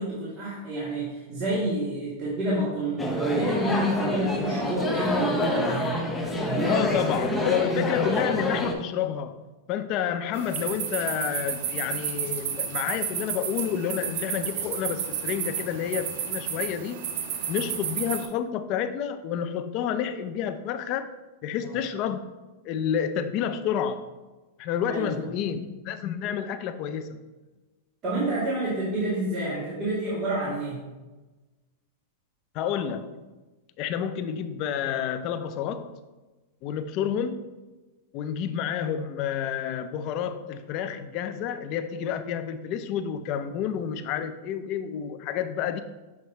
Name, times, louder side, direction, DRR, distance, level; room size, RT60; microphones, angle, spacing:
voice 1, 0.0-6.0 6.4-7.0 21.6-21.7 24.9-25.1 28.0-30.8, right 1 dB, 30° right, -9 dB, 2.0 m, -29 dB
sound 1, 3.0-8.7, left 1 dB, 5° left, 0.7 m, -27 dB
voice 2, 6.6-9.4 9.7-17.0 17.5-21.1 21.4-22.2 22.6-24.1 24.6-27.2 32.5-33.2 33.8-36.0 36.6-37.5 38.1-45.8, left 8 dB, 40° left, 10 dB, 0.5 m, -29 dB
sound 2, 10.3-18.3, right 8 dB, 55° right, 0.7 m, -32 dB
7.1 x 3.1 x 4.4 m, 1.2 s
supercardioid pair, 150°, 0 cm